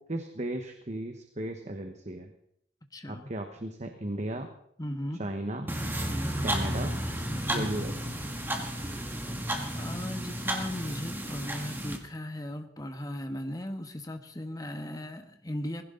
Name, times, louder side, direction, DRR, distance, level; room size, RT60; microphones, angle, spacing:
voice 1, 0.0-2.3 3.1-4.5 5.1-5.7 6.4-7.0 7.5-8.1, right 1 dB, 40° right, 6 dB, 1.3 m, -35 dB
voice 2, 2.9-3.3 4.8-5.3 6.1-6.4 7.3-7.7 9.7-15.8, left 1 dB, 20° left, 6 dB, 1.4 m, -37 dB
sound 1, 5.7-12.0, right 1 dB, 10° right, 1.9 m, -33 dB
20.0 x 16.5 x 3.9 m, 0.68 s
head